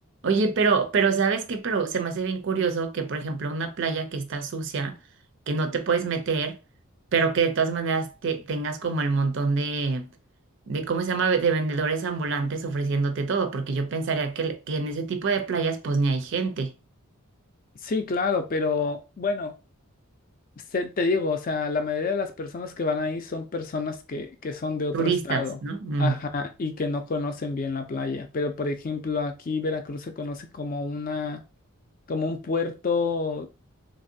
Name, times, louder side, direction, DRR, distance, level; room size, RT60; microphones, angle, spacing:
voice 1, 0.2-4.9 5.5-6.6 7.1-10.1 10.7-16.7 24.9-26.2, right 4 dB, 55° right, 0.4 m, -26 dB
voice 2, 17.8-19.5 20.7-25.6 26.0-31.4 32.1-33.5, left 4 dB, 40° left, 0.4 m, -28 dB
3.1 x 2.6 x 2.6 m
head